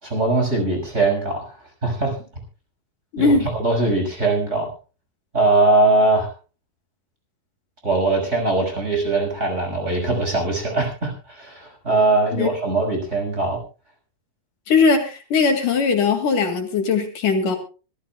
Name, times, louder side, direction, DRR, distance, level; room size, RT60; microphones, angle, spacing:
voice 1, 0.0-1.5 1.8-2.1 3.2-4.7 5.3-6.3 7.8-13.6, right 2 dB, 20° right, 2 dB, 6.1 m, -21 dB
voice 2, 3.1-3.5 12.3-12.5 14.7-17.6, left 4 dB, 65° left, 5 dB, 3.6 m, -19 dB
25.5 x 15.5 x 2.3 m, 0.34 s
omnidirectional pair, 4.1 m